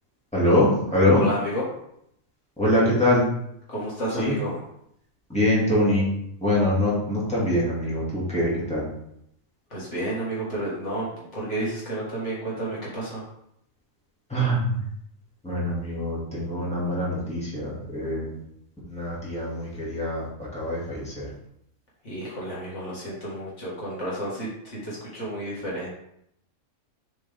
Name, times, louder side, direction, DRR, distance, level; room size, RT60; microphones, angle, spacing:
voice 1, 0.3-1.2 2.6-3.3 4.1-4.3 5.3-6.1 6.4-8.8 14.3-14.8 15.4-18.4 18.9-21.3, left 1 dB, 5° left, -7 dB, 2.3 m, -24 dB
voice 2, 1.2-1.6 3.7-4.6 9.7-13.2 22.0-25.9, right 1 dB, 55° left, -6 dB, 2.3 m, -31 dB
7.0 x 4.4 x 3.6 m, 0.75 s
omnidirectional pair, 1.4 m